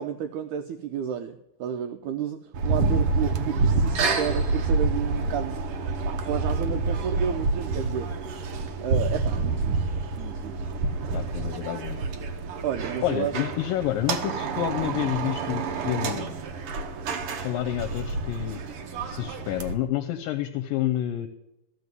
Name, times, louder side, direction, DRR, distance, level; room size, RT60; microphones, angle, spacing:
voice 1, 0.0-5.6 6.0-8.1 8.8-9.9 10.2-10.6 12.6-13.3, right 8 dB, 85° right, 7 dB, 1.7 m, -31 dB
sound 1, 2.5-19.7, right 3 dB, 70° right, 1.3 m, -28 dB
voice 2, 11.1-12.0 13.0-16.3 17.4-18.6 19.1-21.3, left 13 dB, 80° left, 9 dB, 2.2 m, -29 dB
15.0 x 5.2 x 9.5 m, 0.91 s
omnidirectional pair, 4.2 m